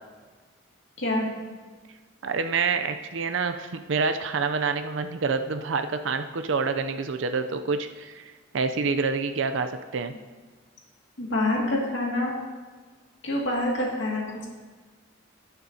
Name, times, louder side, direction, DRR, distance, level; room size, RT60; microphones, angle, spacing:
voice 1, 2.2-8.2 8.5-10.1, right 4 dB, 70° right, 8 dB, 0.5 m, -27 dB
voice 2, 11.2-12.4 13.2-14.5, left 1 dB, 65° left, -2 dB, 2.2 m, -26 dB
18.0 x 6.9 x 2.8 m, 1.4 s
head